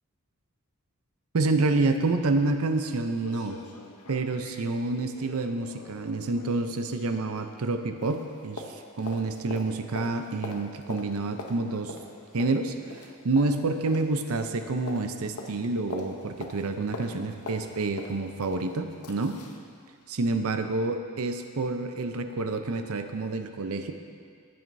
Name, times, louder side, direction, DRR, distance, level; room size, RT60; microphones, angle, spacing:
voice 1, 1.3-3.6 4.1-8.6 9.0-12.0 12.3-19.3 20.1-23.9, right 3 dB, 70° right, 7 dB, 0.6 m, -28 dB
sound 1, 2.4-2.5 2.8-2.9 3.2-19.6 20.0-20.1, left 2 dB, 80° left, 0.8 m, -43 dB
15.5 x 7.7 x 2.7 m, 2.2 s
head